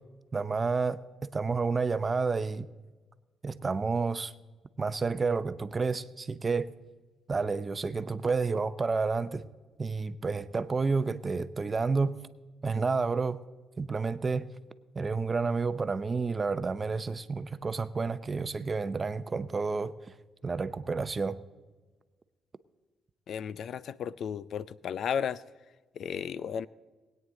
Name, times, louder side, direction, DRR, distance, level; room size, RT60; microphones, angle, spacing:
voice 1, 0.3-2.7 3.4-4.3 4.8-6.7 7.3-9.4 9.8-12.2 12.6-13.4 13.8-14.5 14.9-20.1 20.4-21.4, right 4 dB, 30° right, 14 dB, 0.6 m, -30 dB
voice 2, 23.3-25.4 26.0-26.7, left 8 dB, 65° left, 19 dB, 0.4 m, -34 dB
20.5 x 9.3 x 3.8 m, 1.3 s
cardioid pair, 90°, 0 cm